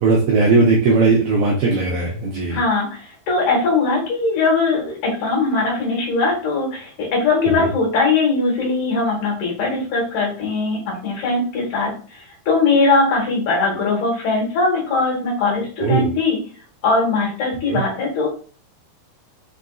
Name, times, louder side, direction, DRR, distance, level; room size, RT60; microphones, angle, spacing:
voice 1, 0.0-2.6 7.6-7.7 15.8-16.1 17.7-17.8, right 3 dB, 80° right, -2 dB, 1.8 m, -17 dB
voice 2, 2.5-16.4 16.8-18.3, left 3 dB, 65° left, -3 dB, 2.6 m, -20 dB
5.5 x 2.5 x 2.3 m, 0.41 s
omnidirectional pair, 4.1 m